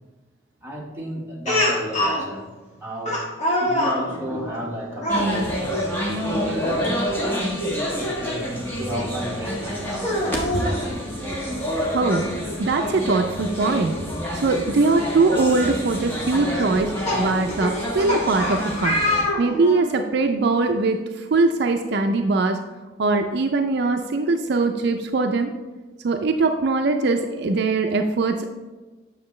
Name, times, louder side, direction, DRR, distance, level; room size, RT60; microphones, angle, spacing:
voice 1, 0.6-2.5 2.7-3.2 3.6-7.5 8.2-10.1, equal, 10° right, -3 dB, 1.3 m, -32 dB
Speech, 1.5-2.2 3.1-4.0 5.0-5.3 6.5-6.8 7.2-7.3 9.0-9.1 9.9-10.8 12.1-12.2 12.5-12.6 14.5-14.6 15.2-15.5 16.6-19.9, left 1 dB, 35° left, 1.6 m, -25 dB
sound 1, 5.1-19.2, equal, 10° left, 1.2 m, -28 dB
voice 2, 11.9-12.2 12.6-14.0 14.3-16.9 17.2-19.0 19.4-22.6 23.0-25.5 26.0-28.4, right 3 dB, 60° right, 5 dB, 0.4 m, -21 dB
8.0 x 6.2 x 3.2 m, 1.2 s
head